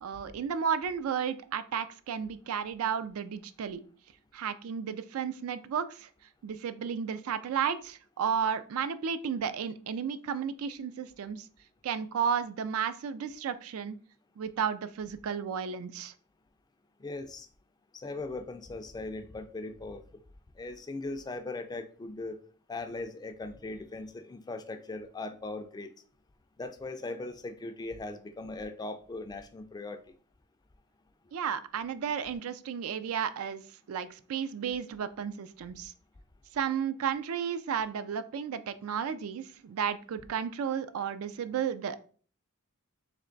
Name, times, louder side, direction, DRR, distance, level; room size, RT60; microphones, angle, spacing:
voice 1, 0.0-3.8 4.3-6.1 6.4-11.5 11.8-14.0 14.4-16.1 31.3-35.9 36.5-42.0, right 7 dB, 75° right, 12 dB, 0.4 m, -33 dB
voice 2, 17.0-17.5 17.9-20.2 20.6-22.4 22.7-25.9 26.6-30.0, left 2 dB, 20° left, 8 dB, 0.3 m, -39 dB
3.3 x 3.1 x 3.8 m, 0.43 s
head